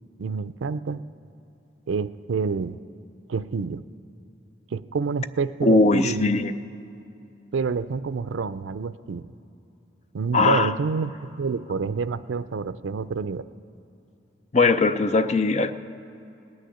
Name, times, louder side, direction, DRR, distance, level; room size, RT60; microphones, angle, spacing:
voice 1, 0.2-1.0 1.9-2.8 3.3-3.8 4.7-6.4 7.5-9.3 10.1-13.5, right 5 dB, 85° right, 15 dB, 0.4 m, -28 dB
voice 2, 5.6-6.5 10.3-10.7 14.5-15.7, left 3 dB, 35° left, 10 dB, 0.5 m, -20 dB
18.5 x 6.5 x 9.9 m, 2.8 s
head